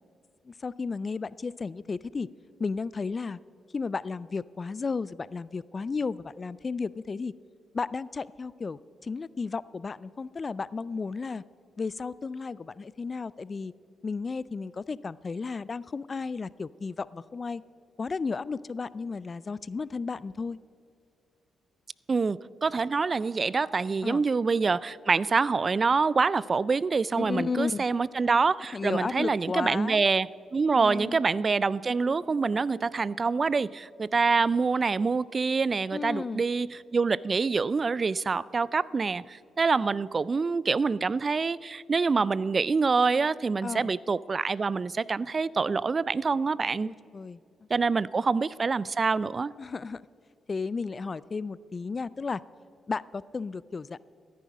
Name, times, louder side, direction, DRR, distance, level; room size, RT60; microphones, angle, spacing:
voice 1, 0.5-2.3 2.6-3.4 3.7-7.3 7.7-11.4 11.8-13.7 14.0-17.6 18.0-20.6 24.0-24.2 27.2-27.8 28.7-30.0 30.7-31.3 35.9-36.4 43.6-43.9 46.8-47.4 49.6-50.0 50.5-52.4 52.9-54.0, left 4 dB, 40° left, 20 dB, 0.3 m, -33 dB
voice 2, 22.1-46.9 47.7-49.5, right 4 dB, 40° right, 21 dB, 0.3 m, -26 dB
14.5 x 9.3 x 5.0 m, 2.4 s
hypercardioid pair, 45°, 0 cm